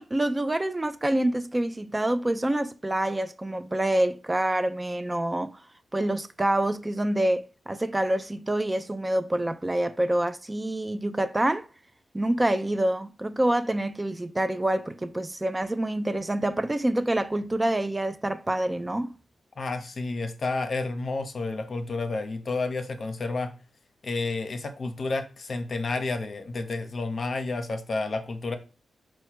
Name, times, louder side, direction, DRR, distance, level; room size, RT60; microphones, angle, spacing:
voice 1, 0.0-5.6 5.9-11.7 12.1-19.1, right 1 dB, 25° right, 0.3 m, -26 dB
voice 2, 19.6-23.5 24.0-28.6, left 3 dB, 60° left, 0.6 m, -30 dB
4.5 x 2.1 x 4.4 m
supercardioid pair, 45°, 0 cm